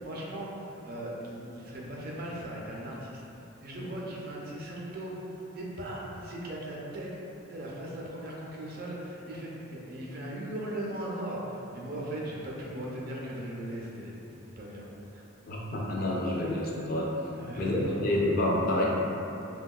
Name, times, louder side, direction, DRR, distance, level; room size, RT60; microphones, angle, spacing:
voice 1, 0.0-3.2 3.6-7.1 7.5-14.2 14.6-14.9 15.1-15.2 17.4-17.7, right 1 dB, 45° right, -3 dB, 0.4 m, -38 dB
voice 2, 15.5-17.1 17.6-18.8, left 1 dB, 45° left, -3 dB, 0.3 m, -28 dB
3.6 x 2.2 x 2.2 m, 2.9 s
head